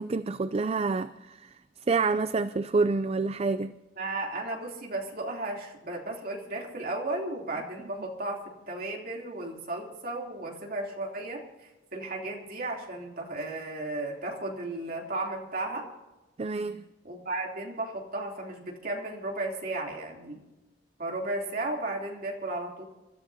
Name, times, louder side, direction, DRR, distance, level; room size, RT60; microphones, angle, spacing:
voice 1, 0.0-1.5 1.9-3.7 16.4-16.9, right 4 dB, 35° right, 13 dB, 0.4 m, -28 dB
voice 2, 4.0-15.9 17.0-20.4 21.0-22.9, right 2 dB, 55° right, 0 dB, 3.2 m, -34 dB
28.0 x 13.5 x 2.8 m, 1.1 s
head